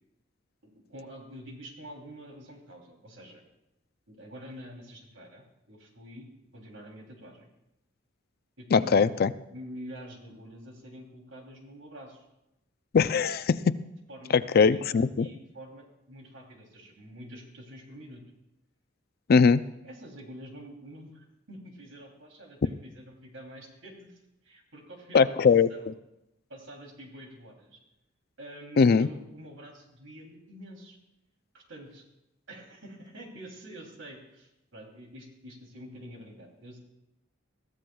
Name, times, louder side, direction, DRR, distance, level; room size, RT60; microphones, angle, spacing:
voice 1, 0.6-3.4 4.1-6.3 6.5-7.5 8.6-9.1 9.5-12.3 14.1-18.2 19.8-25.9 26.5-27.8 28.4-31.0 31.5-32.0 32.5-36.8, equal, 85° right, 1 dB, 3.0 m, -47 dB
voice 2, 8.7-9.3 12.9-13.8 14.5-15.3 19.3-19.6 25.1-25.7 28.8-29.1, left 5 dB, 50° left, 14 dB, 0.4 m, -20 dB
21.5 x 14.5 x 2.3 m, 0.89 s
head